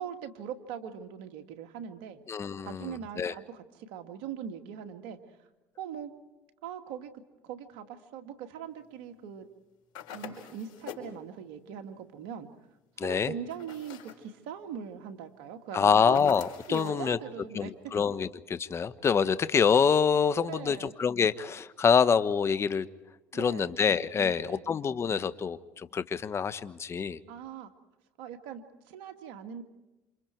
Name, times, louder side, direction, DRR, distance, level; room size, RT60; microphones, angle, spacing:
voice 1, 0.0-2.2 2.6-5.2 5.8-6.1 6.6-7.1 7.4-9.5 10.1-12.5 13.0-16.2 16.7-17.7 20.5-20.9 23.3-23.8 24.2-24.7 27.3-27.7 28.2-29.6, right 8 dB, 80° right, 6 dB, 2.2 m, -41 dB
voice 2, 2.3-3.3 13.0-13.3 15.7-17.2 17.5-22.9 23.3-25.6 25.9-27.2, left 6 dB, 35° left, 13 dB, 1.2 m, -26 dB
sound 1, 9.9-11.2 13.5-14.3 16.1-17.0, left 7 dB, 75° left, 5.1 m, -45 dB
28.5 x 27.0 x 4.7 m, 1.1 s
supercardioid pair, 80°, 7 cm